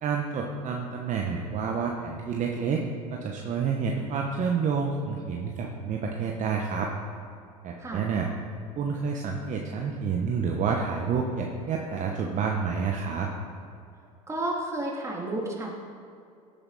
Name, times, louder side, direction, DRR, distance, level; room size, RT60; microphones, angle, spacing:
voice 1, 0.0-2.8 3.1-6.9 7.6-8.3 8.8-13.3, right 5 dB, 40° right, 1 dB, 1.2 m, -29 dB
voice 2, 14.3-15.7, right 1 dB, 15° right, -2 dB, 3.1 m, -31 dB
17.0 x 9.0 x 4.3 m, 2.4 s
hypercardioid pair, 80°, 19 cm